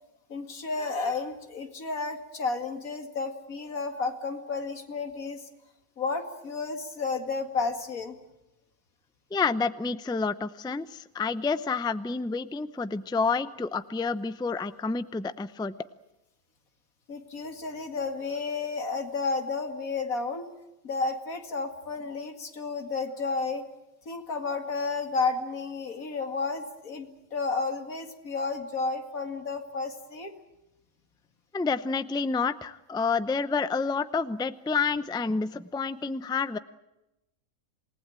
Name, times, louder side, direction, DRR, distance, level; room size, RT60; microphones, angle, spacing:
voice 1, 0.3-5.4 6.0-8.1 17.1-20.5 20.8-23.6 24.1-30.3, left 4 dB, 80° left, 6 dB, 2.6 m, -32 dB
voice 2, 9.3-15.7 31.5-36.6, left 4 dB, 5° left, 14 dB, 0.4 m, -29 dB
27.5 x 19.0 x 9.0 m, 0.94 s
omnidirectional pair, 1.5 m